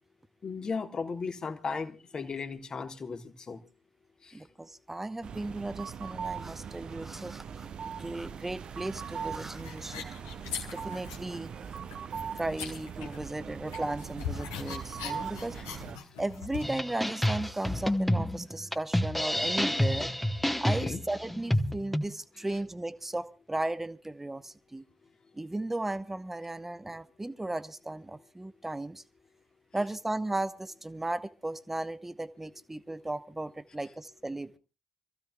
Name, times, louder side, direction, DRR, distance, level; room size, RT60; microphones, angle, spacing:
voice 1, 0.4-3.6 15.6-15.7 20.8-21.0, left 5 dB, 40° left, 6 dB, 1.6 m, -36 dB
voice 2, 4.3-10.1 10.7-11.5 12.1-15.8 16.2-20.1 20.6-24.8 25.3-29.0 29.7-34.6, right 2 dB, 15° right, 15 dB, 0.9 m, -36 dB
sound 1, 5.2-16.0, right 7 dB, 50° right, 0.7 m, -40 dB
sound 2, 9.6-11.4 11.7-13.4 13.7-16.8, left 7 dB, 75° left, 1.5 m, -41 dB
sound 3, 16.6-22.0, left 1 dB, 5° left, 1.3 m, -28 dB
28.0 x 15.0 x 2.4 m, 0.31 s
figure-of-eight pair, 40°, 2 cm